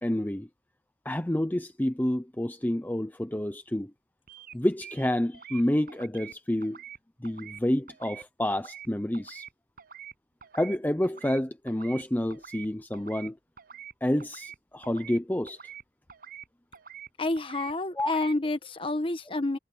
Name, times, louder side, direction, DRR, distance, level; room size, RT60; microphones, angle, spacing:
voice 1, 0.0-0.5 1.0-3.9 4.5-6.8 7.2-9.5 10.5-13.4 14.0-15.6 18.0-18.1, left 1 dB, 10° left, 0.6 m, -29 dB
sound 1, 4.3-4.5 4.8-5.6 5.9-6.3 6.6-7.0 7.2-7.6 7.9-8.2 8.5-8.9 9.1-9.5 9.8-10.1 10.4-10.8 11.0-11.4 11.7-12.0 12.3-12.7 12.9-13.3 13.6-13.9 14.2-14.6 14.8-15.2 15.5-15.8 16.1-16.5 16.7-17.1 17.4-17.7 18.0-18.3, right 9 dB, 55° right, 7.0 m, -46 dB
voice 2, 17.2-19.6, left 2 dB, 30° left, 1.4 m, -29 dB
head